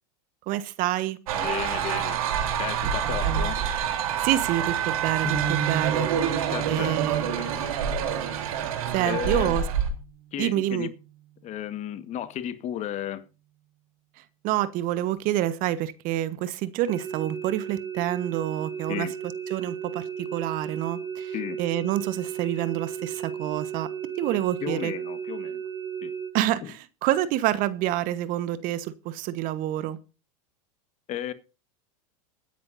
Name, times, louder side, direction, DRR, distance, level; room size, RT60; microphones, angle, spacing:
voice 1, 0.5-1.2 3.0-3.5 4.2-6.1 6.7-7.3 8.9-9.6 10.4-10.9 14.4-19.1 19.5-23.9 24.2-24.9 26.3-30.0, right 13 dB, 50° right, 1.3 m, -27 dB
voice 2, 1.3-2.2 2.6-3.6 6.5-7.8 9.0-9.5 10.3-10.9 11.4-13.2 18.9-19.1 21.3-21.6 24.6-25.6 26.0-26.1 26.6-26.7 31.1-31.3, left 11 dB, 40° left, 1.5 m, -34 dB
sound 1, 1.3-9.9, right 8 dB, 75° right, 3.6 m, -27 dB
sound 2, 5.2-11.3, right 7 dB, ahead, 4.2 m, -36 dB
sound 3, 16.9-26.3, right 7 dB, 20° right, 2.8 m, -35 dB
22.0 x 10.0 x 2.7 m
hypercardioid pair, 105°, 19 cm